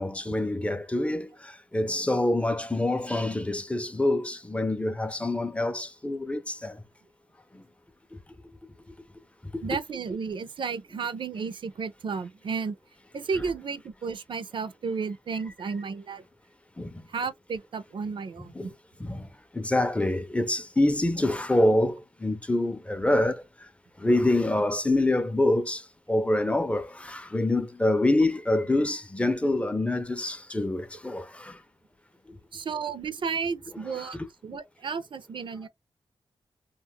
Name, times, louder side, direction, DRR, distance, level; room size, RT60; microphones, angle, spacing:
voice 1, 0.0-6.8 7.5-7.6 8.1-8.2 9.4-9.8 16.8-17.1 18.5-18.7 19.0-23.7 24.0-31.6 32.3-32.4 33.9-34.3, left 1 dB, 15° left, 0.4 m, -26 dB
voice 2, 9.6-12.8 13.1-16.2 17.1-18.7 32.5-34.2 34.4-35.7, right 5 dB, 60° right, 0.4 m, -33 dB
2.2 x 2.0 x 3.4 m
cardioid pair, 80°, 9 cm